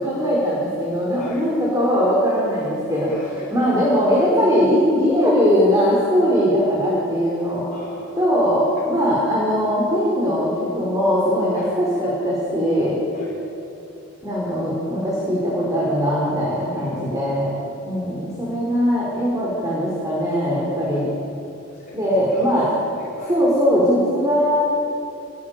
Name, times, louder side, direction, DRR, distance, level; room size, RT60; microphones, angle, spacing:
voice 1, 0.0-3.1 3.5-7.7 8.2-13.0 14.2-17.5 17.9-21.1 21.9-22.7 23.3-24.6, equal, 15° right, -5 dB, 5.2 m, -20 dB
voice 2, 1.1-1.5 2.9-3.9 7.7-8.3 8.8-8.9 11.5-11.7 13.1-13.3 16.7-17.1 21.7-23.3, left 1 dB, 40° left, -5 dB, 5.4 m, -37 dB
28.5 x 22.5 x 7.8 m, 2.9 s
head